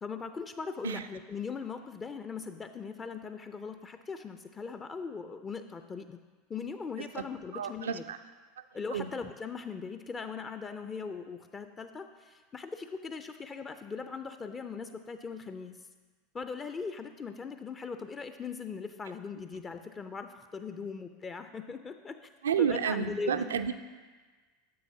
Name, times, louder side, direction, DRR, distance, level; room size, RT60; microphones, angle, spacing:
voice 1, 0.0-6.2 6.5-8.1 8.7-15.8 16.3-22.2 22.6-23.6, left 5 dB, 25° left, 8 dB, 0.4 m, -40 dB
voice 2, 7.5-8.2 8.9-9.1 22.4-23.7, right 7 dB, 75° right, 10 dB, 0.4 m, -30 dB
9.4 x 7.4 x 2.7 m, 1.4 s
figure-of-eight pair, 80°, 0 cm